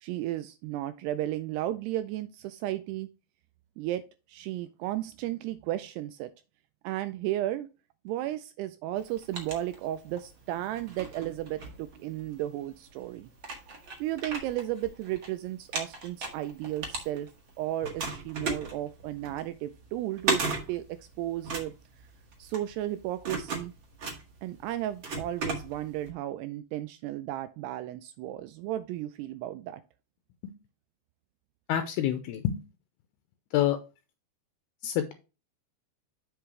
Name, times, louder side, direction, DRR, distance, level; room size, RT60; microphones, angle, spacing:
voice 1, 0.0-3.1 3.8-6.3 6.8-7.7 8.1-13.3 14.0-17.3 17.6-21.7 22.4-23.7 24.4-29.8, right 14 dB, 85° right, 11 dB, 2.4 m, -34 dB
sound 1, 9.0-10.3 10.7-12.4 13.0-13.1 13.4-15.3 15.6-17.5 17.8-26.1, right 3 dB, 65° right, 1.2 m, -35 dB
voice 2, 31.7-32.6 33.5-33.8 34.8-35.1, left 11 dB, 80° left, 7 dB, 2.4 m, -27 dB
7.9 x 5.9 x 3.2 m, 0.30 s
omnidirectional pair, 5.0 m